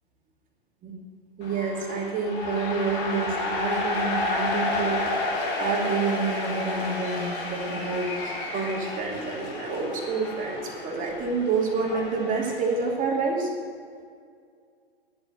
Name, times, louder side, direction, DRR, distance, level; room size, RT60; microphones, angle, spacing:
sound 1, 1.4-12.9, left 2 dB, 55° left, 4.2 m, -31 dB
voice 1, 1.4-13.5, right 4 dB, 25° right, -1 dB, 2.6 m, -28 dB
10.5 x 8.2 x 8.9 m, 2.2 s
hypercardioid pair, 125°, 31 cm